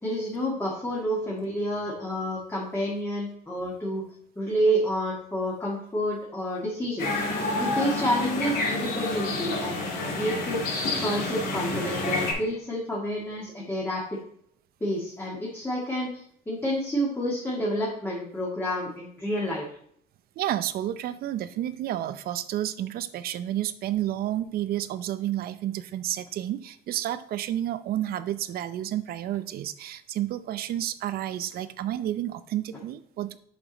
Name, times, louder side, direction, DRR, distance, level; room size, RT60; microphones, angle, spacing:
voice 1, 0.0-4.0 4.4-7.1 7.6-10.6 11.0-14.2 14.8-19.7, equal, 15° left, -5 dB, 1.9 m, -29 dB
sound 1, 7.0-12.3, left 2 dB, 65° left, 2.8 m, -29 dB
voice 2, 20.4-33.4, right 12 dB, 65° right, 14 dB, 0.6 m, -30 dB
7.2 x 5.2 x 4.0 m, 0.65 s
cardioid pair, 110°, 17 cm